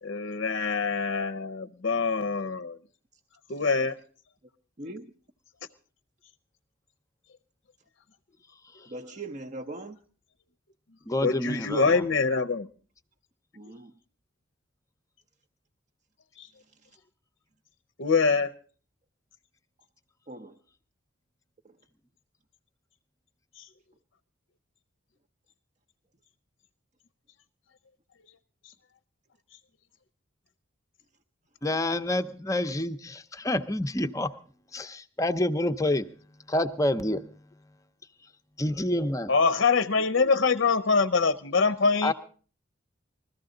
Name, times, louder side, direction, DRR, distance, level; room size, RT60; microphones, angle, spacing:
voice 1, 0.0-2.8 3.5-4.0 11.2-12.7 16.4-16.5 18.0-18.5 23.6-23.7 28.6-28.7 39.3-42.1, left 4 dB, 55° left, 8 dB, 0.6 m, -24 dB
voice 2, 4.8-5.1 8.9-10.0 13.5-13.9 20.3-20.6, right 2 dB, 35° right, 4 dB, 0.7 m, -40 dB
voice 3, 11.1-12.0 31.6-34.3 34.7-36.1 36.5-37.3 38.6-39.3 42.0-42.1, left 1 dB, 15° left, 9 dB, 0.7 m, -28 dB
21.0 x 14.5 x 3.8 m, 0.41 s
head